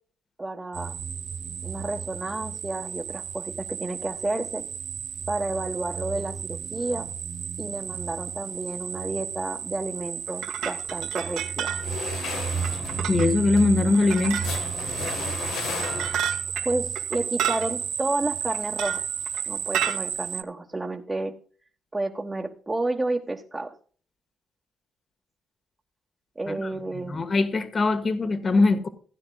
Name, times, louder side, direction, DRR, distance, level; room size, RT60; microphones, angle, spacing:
voice 1, 0.4-1.0 1.6-4.7 5.3-7.1 7.6-11.7 16.6-19.0 19.5-21.3 21.9-23.7 26.4-27.3, right 2 dB, 20° right, 1.3 m, -31 dB
sound 1, 0.7-20.4, right 7 dB, 60° right, 0.7 m, -32 dB
sound 2, 10.3-11.9 12.1-12.2 12.6-13.3 13.9-14.7 15.0-15.1 15.5-17.7 18.5-19.4 19.7-20.0, right 10 dB, 85° right, 2.2 m, -30 dB
sound 3, 11.8-16.4, left 6 dB, 80° left, 1.5 m, -35 dB
voice 2, 13.1-14.4 26.5-28.9, left 3 dB, 40° left, 1.5 m, -22 dB
16.5 x 9.8 x 2.3 m
cardioid pair, 90°, 0 cm